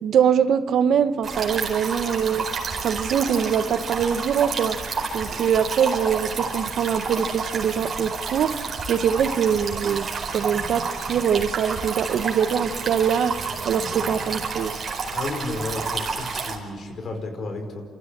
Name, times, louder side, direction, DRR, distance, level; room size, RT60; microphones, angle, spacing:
voice 1, 0.0-2.5 2.8-4.8 5.1-8.6 8.9-13.4 13.6-14.8, right 8 dB, 65° right, 11 dB, 1.1 m, -23 dB
sound 1, 1.2-16.6, right 5 dB, 45° right, 4.9 m, -30 dB
voice 2, 15.1-17.8, left 2 dB, 50° left, 6 dB, 5.0 m, -32 dB
29.5 x 14.5 x 8.8 m, 2.3 s
cardioid pair, 90°, 0 cm